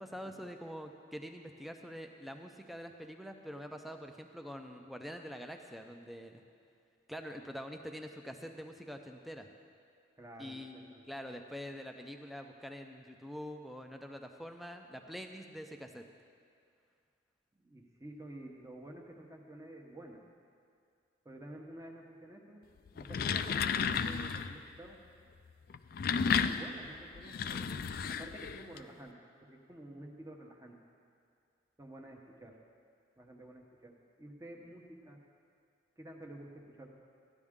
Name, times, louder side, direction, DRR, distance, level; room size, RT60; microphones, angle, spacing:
voice 1, 0.0-6.4 7.1-9.5 10.4-16.0, equal, ahead, 4 dB, 0.5 m, -45 dB
voice 2, 10.2-11.0 17.6-20.2 21.2-22.6 22.9-25.0 26.3-29.2 29.4-30.8 31.8-32.6 33.2-35.2 36.0-36.9, right 1 dB, 15° right, 1 dB, 0.9 m, -50 dB
sound 1, 22.9-24.6 25.7-28.8, left 6 dB, 50° left, 0.3 m, -33 dB
14.5 x 10.5 x 3.7 m, 2.3 s
head